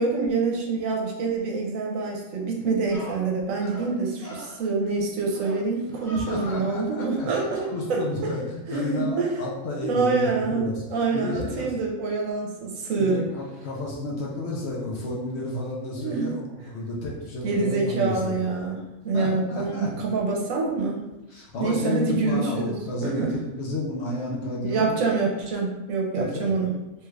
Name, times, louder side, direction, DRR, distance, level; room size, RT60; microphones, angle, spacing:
voice 1, 0.0-8.0 8.7-9.3 9.8-13.2 16.0-16.4 17.4-21.0 21.6-22.7 23.0-23.3 24.6-26.7, right 4 dB, 75° right, -1 dB, 1.1 m, -26 dB
sound 1, 2.4-2.5 2.9-3.2 3.6-3.9 4.2-4.6 5.3-5.6 5.9-6.6 7.3-7.8, equal, 20° left, 0.9 m, -41 dB
voice 2, 6.2-7.3 7.7-10.9 11.1-11.7 13.0-18.4 19.1-19.9 21.3-24.9 26.1-26.6, left 2 dB, 60° left, -3 dB, 0.8 m, -31 dB
3.1 x 2.3 x 3.2 m, 0.99 s
omnidirectional pair, 1.4 m